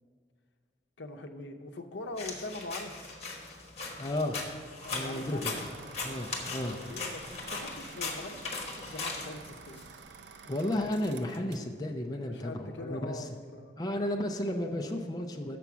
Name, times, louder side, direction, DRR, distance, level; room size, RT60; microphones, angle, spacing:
voice 1, 1.0-3.0 4.8-5.7 6.6-9.8 12.3-13.8, left 2 dB, 80° left, 6 dB, 0.7 m, -43 dB
sound 1, 2.2-9.8, left 3 dB, 35° left, 1.3 m, -39 dB
voice 2, 4.0-4.4 4.9-5.7 6.0-6.8 10.4-13.3 13.8-15.6, left 1 dB, 20° left, 2 dB, 0.5 m, -33 dB
sound 2, 4.8-11.7, right 5 dB, 75° right, 0.5 m, -50 dB
6.8 x 5.8 x 6.0 m, 2.1 s
head